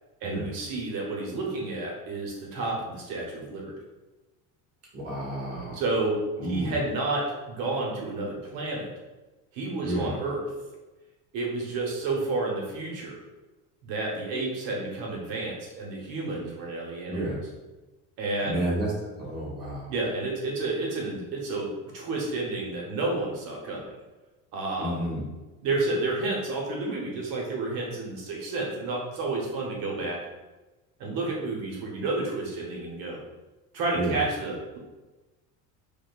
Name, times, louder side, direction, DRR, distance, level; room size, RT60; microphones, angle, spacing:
voice 1, 0.2-3.7 5.7-6.2 6.5-8.9 9.5-10.4 11.3-13.1 13.8-17.2 18.2-18.6 19.9-23.9 24.5-25.1 25.6-30.2 31.0-33.2 33.7-34.8, right 2 dB, 65° right, -2 dB, 1.0 m, -30 dB
voice 2, 4.9-5.8 6.4-6.7 9.8-10.1 17.1-17.4 18.4-18.9 19.2-19.9 24.8-25.2 33.9-34.2, right 1 dB, 40° right, -5 dB, 1.3 m, -30 dB
4.8 x 2.2 x 2.4 m, 1.1 s
cardioid pair, 155°, 38 cm